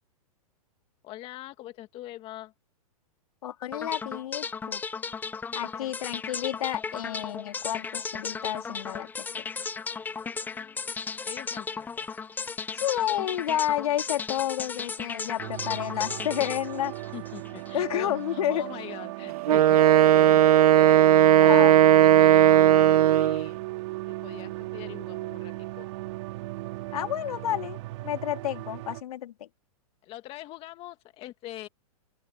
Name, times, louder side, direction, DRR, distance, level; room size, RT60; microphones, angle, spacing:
voice 1, 1.0-2.5 5.8-6.0 10.2-12.1 17.1-23.6 24.2-25.9 30.0-31.7, left 15 dB, 30° left, 2.0 m, -44 dB
voice 2, 3.4-4.8 5.5-9.5 12.8-16.9 17.7-18.6 21.4-21.7 26.9-29.5, left 12 dB, 70° left, 3.8 m, -30 dB
sound 1, 3.7-17.8, left 5 dB, 10° left, 0.7 m, -35 dB
sound 2, 15.4-29.0, right 20 dB, 50° right, 3.1 m, -37 dB
Wind instrument woodwind instrument, 19.5-23.5, right 12 dB, 75° right, 0.5 m, -17 dB
open air
hypercardioid pair, 145°, 19 cm